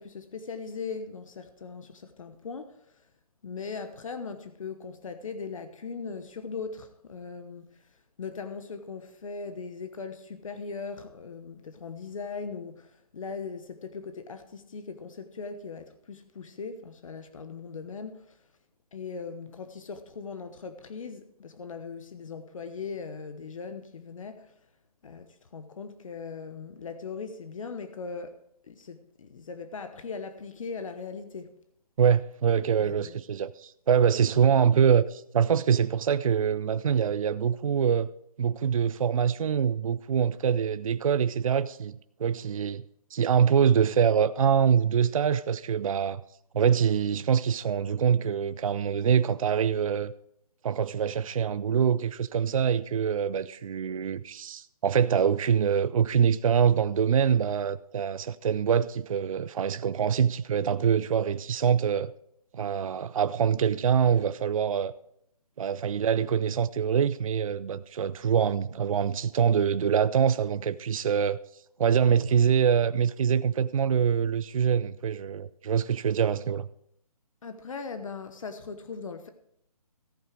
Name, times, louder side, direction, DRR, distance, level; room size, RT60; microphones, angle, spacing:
voice 1, 0.0-3.0 3.4-7.9 8.2-18.4 18.9-24.6 25.0-28.4 28.7-31.5 32.8-33.2 77.4-79.3, left 5 dB, 55° left, 1.1 m, -39 dB
voice 2, 32.0-38.1 38.4-42.8 43.1-46.2 46.5-50.1 50.6-62.1 62.5-64.9 65.6-71.4 71.8-76.7, right 7 dB, 60° right, 0.5 m, -24 dB
14.5 x 9.0 x 4.6 m
figure-of-eight pair, 150°, 20 cm